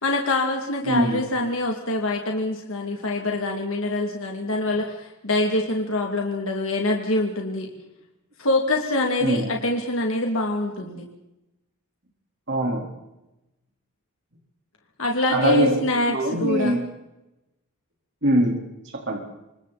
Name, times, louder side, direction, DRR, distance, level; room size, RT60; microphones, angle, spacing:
voice 1, 0.0-7.7 8.4-11.0 15.0-16.8, left 2 dB, 70° left, 1 dB, 2.9 m, -25 dB
voice 2, 0.8-1.2 9.2-9.5 12.5-12.8 15.3-16.8 18.2-18.6 18.9-19.2, right 1 dB, 55° right, -1 dB, 4.4 m, -22 dB
28.5 x 26.5 x 4.4 m, 0.93 s
head